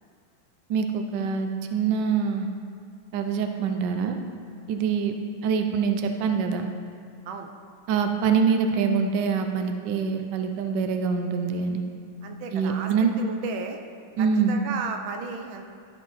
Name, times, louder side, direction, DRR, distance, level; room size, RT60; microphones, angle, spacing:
voice 1, 0.7-2.5 3.1-4.2 4.7-5.1 5.4-6.7 7.9-11.8 12.5-13.1 14.2-14.6, right 6 dB, 70° right, 5 dB, 1.2 m, -25 dB
voice 2, 12.2-12.9 13.2-13.8 14.2-15.7, right 5 dB, 90° right, 4 dB, 1.5 m, -34 dB
13.0 x 4.5 x 4.1 m, 2.2 s
omnidirectional pair, 2.1 m